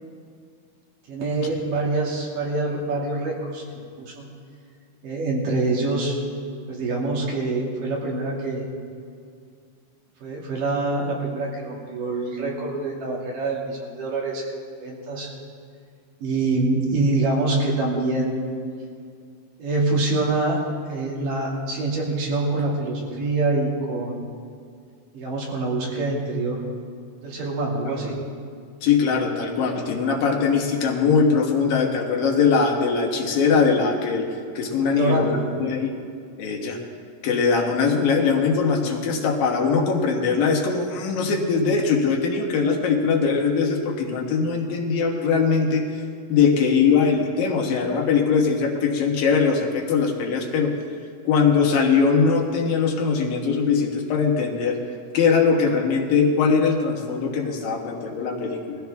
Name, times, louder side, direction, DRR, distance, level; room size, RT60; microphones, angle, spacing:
voice 1, 1.1-4.3 5.0-6.2 6.7-8.6 10.2-14.4 14.8-15.3 16.2-18.4 19.6-20.6 20.9-24.3 25.1-26.6 27.2-28.2 34.9-35.5, right 2 dB, 75° right, -3 dB, 4.0 m, -25 dB
voice 2, 28.8-34.3 34.6-36.0 36.4-36.8 37.2-45.8 46.3-50.7 51.2-54.8 55.1-58.8, left 5 dB, 90° left, 1 dB, 3.2 m, -21 dB
21.0 x 14.5 x 3.5 m, 2.3 s
omnidirectional pair, 3.9 m